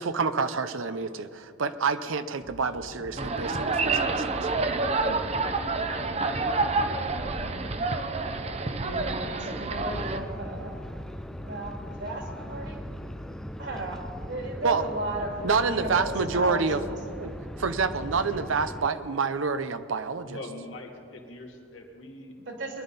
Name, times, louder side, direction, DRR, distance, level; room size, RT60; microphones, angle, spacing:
voice 1, 0.0-4.5 14.6-14.8 15.4-16.8 17.2-17.3 17.6-20.4, right 4 dB, 80° right, 11 dB, 0.7 m, -28 dB
sound 1, 2.4-18.5, equal, 30° left, 1.1 m, -44 dB
sound 2, 3.2-10.2, right 3 dB, 30° right, 0.7 m, -28 dB
voice 2, 7.3-7.6 8.6-10.8 11.4-12.8 13.6-17.5 22.5-22.8, right 2 dB, 60° right, 1 dB, 2.7 m, -35 dB
sound 3, 9.9-18.9, equal, 5° left, 0.4 m, -40 dB
voice 3, 20.2-22.3, left 2 dB, 75° left, 0 dB, 2.3 m, -42 dB
21.5 x 11.5 x 4.1 m, 2.3 s
head